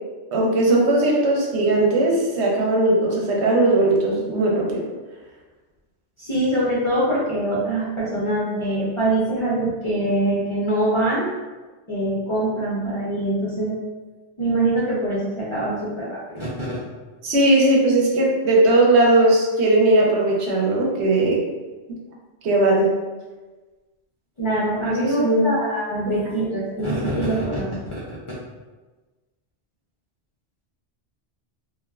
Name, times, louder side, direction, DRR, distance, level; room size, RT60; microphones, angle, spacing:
voice 1, 0.3-4.8 17.2-21.4 22.4-22.9 24.9-25.5, right 2 dB, 75° right, -2 dB, 0.9 m, -18 dB
voice 2, 6.2-11.3 11.9-13.8 14.4-16.8 24.4-28.2, right 1 dB, 40° left, -8 dB, 0.5 m, -24 dB
3.2 x 2.1 x 2.3 m, 1.3 s
omnidirectional pair, 1.1 m